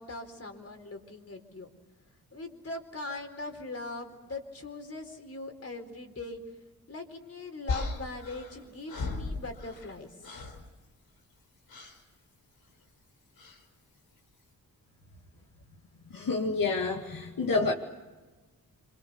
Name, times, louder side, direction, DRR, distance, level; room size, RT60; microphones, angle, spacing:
voice 1, 0.0-1.7 2.3-6.4 6.9-10.4, left 2 dB, 45° left, 6 dB, 4.3 m, -41 dB
sound 1, 7.7-10.0 10.2-10.7 11.7-12.0 13.4-13.6, left 3 dB, 90° left, 4.6 m, -36 dB
voice 2, 16.1-17.7, left 3 dB, 70° left, 1 dB, 2.3 m, -28 dB
27.0 x 26.0 x 7.0 m, 1.2 s
wide cardioid pair, 100°, 35 cm